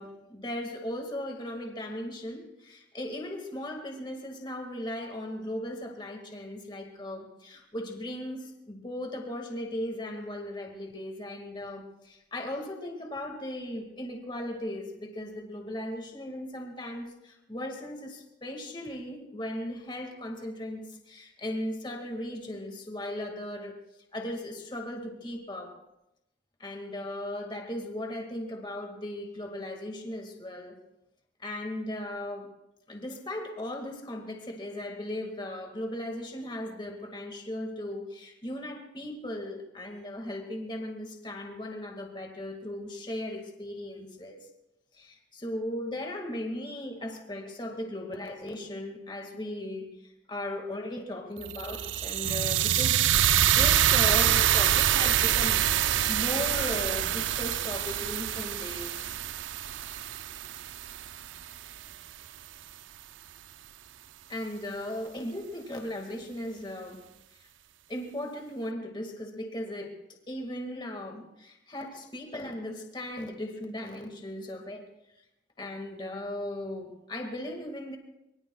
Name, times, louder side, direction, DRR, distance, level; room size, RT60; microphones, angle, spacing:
voice 1, 0.0-23.7 24.1-25.8 26.6-30.8 31.4-32.5 32.9-44.5 44.9-53.0 53.4-59.1 61.2-61.3 64.3-67.0 67.9-70.0 70.3-74.8 75.6-78.0, left 1 dB, 25° left, 3 dB, 1.9 m, -37 dB
sound 1, 51.4-61.6, right 11 dB, 80° right, 0.4 m, -26 dB
24.0 x 22.0 x 2.3 m, 0.88 s
head